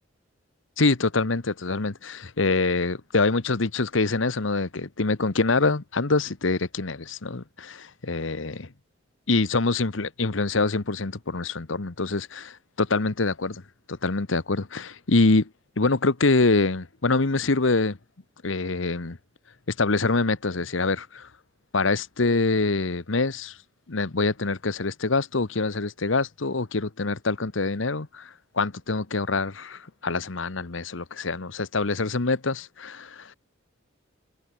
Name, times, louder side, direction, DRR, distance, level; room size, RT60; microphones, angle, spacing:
voice 1, 0.8-8.7 9.3-13.6 13.9-15.5 15.8-18.0 18.4-19.2 19.7-21.3 21.7-23.6 23.9-33.3, left 3 dB, 75° left, 1.2 m, -25 dB
head